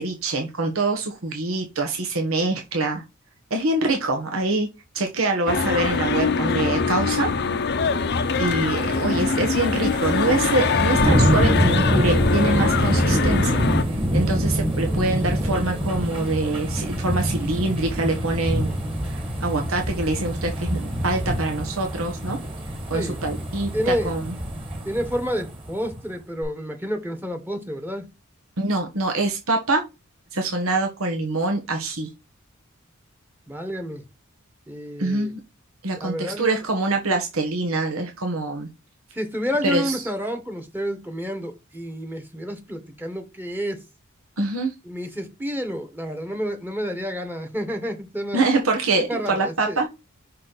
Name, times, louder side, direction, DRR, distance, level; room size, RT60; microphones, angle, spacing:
voice 1, 0.0-3.0 3.5-4.7 4.9-7.3 8.4-18.7 19.0-22.4 22.9-24.3 28.6-29.8 30.3-32.1 35.0-35.4 35.8-38.7 39.6-40.0 44.4-44.7 48.3-49.9, right 2 dB, 85° right, 1.3 m, -25 dB
sound 1, 5.5-13.8, left 4 dB, 55° left, 0.7 m, -23 dB
sound 2, 7.9-26.0 26.4-26.5, equal, 25° right, 2.0 m, -25 dB
voice 2, 23.7-24.1 24.8-28.1 33.5-34.0 34.7-35.3 36.0-36.6 39.1-43.8 44.8-48.4 49.1-49.8, equal, 10° right, 1.2 m, -29 dB
5.9 x 4.2 x 4.0 m
head